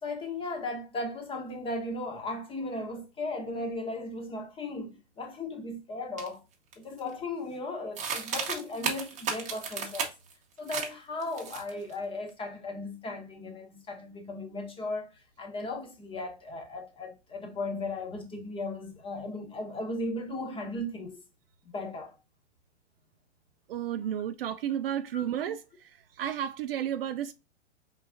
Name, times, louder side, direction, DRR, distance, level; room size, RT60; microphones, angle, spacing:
voice 1, 0.0-6.4 6.8-10.1 10.6-21.2 21.7-22.2 24.1-24.2 25.1-25.3, left 2 dB, 15° left, 1.0 m, -36 dB
sound 1, 6.2-6.3 6.7-7.1 8.0-10.3 10.7-10.9 11.2-11.9, right 6 dB, 20° right, 1.0 m, -33 dB
voice 2, 23.7-25.6 26.2-27.3, right 10 dB, 55° right, 0.4 m, -32 dB
4.7 x 3.7 x 2.6 m
figure-of-eight pair, 110°, 35 cm